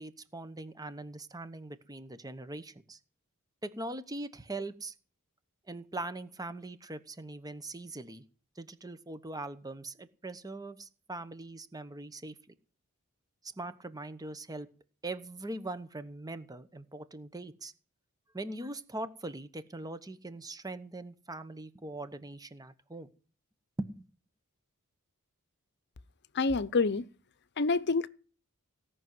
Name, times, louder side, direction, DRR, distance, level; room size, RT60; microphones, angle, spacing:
voice 1, 0.0-3.0 3.6-4.9 5.7-8.2 8.6-12.3 13.6-14.7 15.0-17.7 18.3-23.1 23.8-24.1, right 2 dB, 15° right, 1.0 m, -41 dB
voice 2, 26.3-27.1 27.6-28.1, left 4 dB, 50° left, 0.8 m, -27 dB
17.0 x 6.2 x 9.5 m
head